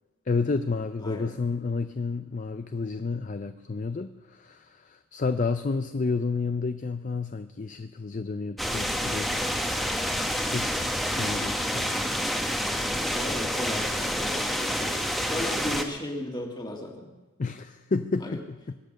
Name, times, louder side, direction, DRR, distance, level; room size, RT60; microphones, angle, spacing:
voice 1, 0.3-9.5 10.1-12.1 17.4-18.7, left 4 dB, 35° left, 9 dB, 0.4 m, -31 dB
voice 2, 1.0-1.4 13.0-15.0 15.2-17.1 18.2-18.4, left 1 dB, 20° left, 2 dB, 1.9 m, -35 dB
sound 1, 8.6-15.8, equal, ahead, 1.0 m, -28 dB
23.0 x 9.0 x 6.5 m, 1.2 s
head